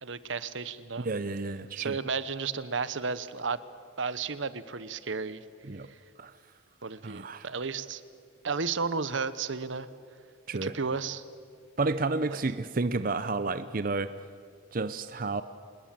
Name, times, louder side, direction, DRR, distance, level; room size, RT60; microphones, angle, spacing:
voice 1, 0.0-1.1 1.7-3.6 4.0-5.4 5.9-6.0 6.8-8.0 8.4-9.9 10.6-11.2 12.3-12.4, right 5 dB, 75° right, 15 dB, 1.0 m, -33 dB
voice 2, 1.0-2.0 5.7-5.9 6.2-6.3 7.0-7.5 10.5-10.7 11.8-14.1 14.7-15.4, right 3 dB, 45° right, 12 dB, 0.6 m, -31 dB
27.0 x 20.5 x 7.6 m, 2.2 s
head